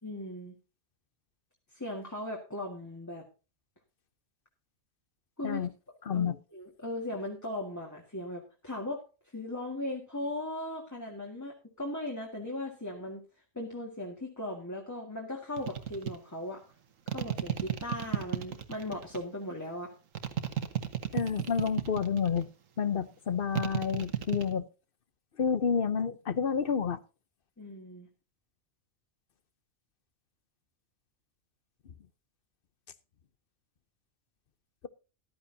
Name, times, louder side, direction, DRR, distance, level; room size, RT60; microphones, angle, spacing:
voice 1, 0.0-0.5 1.7-3.3 5.4-5.7 6.1-9.0 9.3-13.2 13.5-16.6 17.1-19.9 27.6-28.1, left 1 dB, 15° left, 1.8 m, -38 dB
voice 2, 6.1-6.4 21.1-22.5 22.8-24.7 25.4-27.0, left 6 dB, 50° left, 0.8 m, -29 dB
sound 1, 15.6-16.2 17.1-19.2 20.2-22.4 23.6-24.5, right 10 dB, 80° right, 1.5 m, -33 dB
14.0 x 12.5 x 2.7 m
omnidirectional pair, 1.4 m